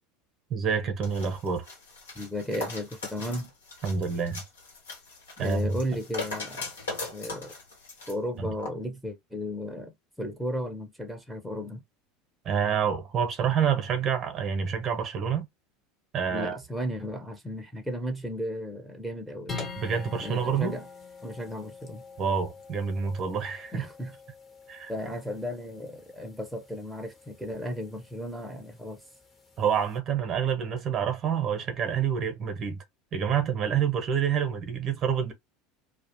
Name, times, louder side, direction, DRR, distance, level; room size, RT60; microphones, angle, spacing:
voice 1, 0.5-1.7 3.8-4.4 5.4-5.8 8.4-8.5 12.4-15.5 16.1-16.6 19.8-20.7 22.2-23.9 24.7-24.9 29.6-32.8 33.1-35.3, right 7 dB, 40° right, 0.8 m, -27 dB
sound 1, 1.0-8.2 8.6-8.7, left 3 dB, 80° left, 1.1 m, -39 dB
voice 2, 2.1-3.5 5.4-6.6 7.1-7.5 8.1-11.8 16.3-19.6 20.2-20.9 21.2-22.0 23.7-24.2 24.9-29.0, equal, 5° right, 0.7 m, -34 dB
sound 2, 19.5-30.0, left 4 dB, 30° left, 0.9 m, -45 dB
2.3 x 2.1 x 2.9 m
hypercardioid pair, 75°, 0 cm